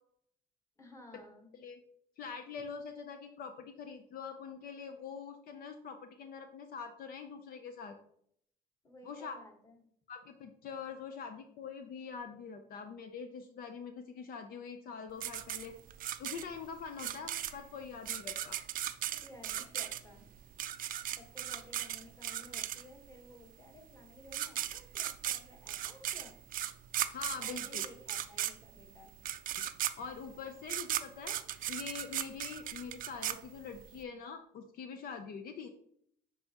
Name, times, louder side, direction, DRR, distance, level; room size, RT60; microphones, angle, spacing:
voice 1, 0.8-1.5 8.8-9.8 16.9-17.2 19.2-20.2 21.2-26.4 27.4-29.1, left 1 dB, 15° left, 3 dB, 1.3 m, -55 dB
voice 2, 2.2-7.9 9.0-9.3 10.1-15.7 16.2-18.6 27.1-27.8 30.0-31.4 31.7-35.7, left 6 dB, 60° left, 7 dB, 0.6 m, -44 dB
sound 1, 15.2-23.1 24.0-24.1 24.3-34.0, right 12 dB, 55° right, 0.4 m, -37 dB
9.8 x 3.4 x 2.9 m, 0.68 s
cardioid pair, 110°, 17 cm